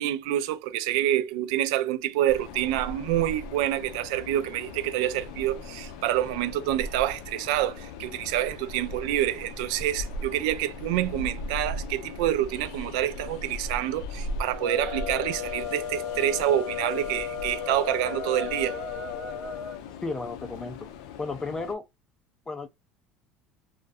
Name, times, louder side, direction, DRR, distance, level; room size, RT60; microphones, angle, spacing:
voice 1, 0.0-18.8, right 13 dB, 85° right, 0.3 m, -27 dB
Train, 2.3-21.7, left 2 dB, 85° left, 0.4 m, -39 dB
sound 1, 14.5-19.8, left 7 dB, 35° left, 0.8 m, -34 dB
voice 2, 20.0-20.9 21.2-21.8 22.5-22.7, left 3 dB, 15° left, 0.3 m, -33 dB
2.4 x 2.1 x 2.5 m
supercardioid pair, 120°, 3 cm